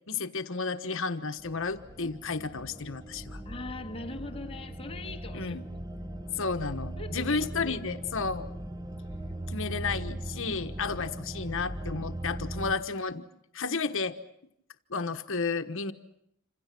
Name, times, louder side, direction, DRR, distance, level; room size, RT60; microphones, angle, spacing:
voice 1, 0.1-3.4 5.3-5.6 6.4-8.5 9.5-13.2 13.5-14.1 14.9-15.9, left 4 dB, 60° left, 1.2 m, -32 dB
sound 1, 1.4-12.7, right 1 dB, 15° right, 1.0 m, -39 dB
voice 2, 3.4-5.6 7.0-7.8, left 2 dB, 25° left, 1.6 m, -41 dB
27.5 x 27.0 x 6.0 m
head